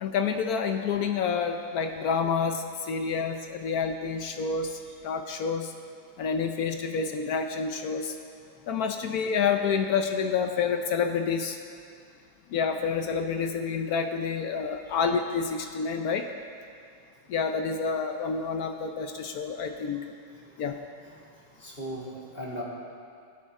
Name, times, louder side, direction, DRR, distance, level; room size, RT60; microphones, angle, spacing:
voice 1, 0.0-5.7 6.2-8.1 8.7-11.6 12.5-16.3 17.3-20.1 20.6-20.8, left 6 dB, 70° left, 6 dB, 0.9 m, -28 dB
voice 2, 21.3-22.6, equal, 25° left, -5 dB, 2.5 m, -39 dB
19.0 x 8.6 x 3.7 m, 2.3 s
omnidirectional pair, 2.2 m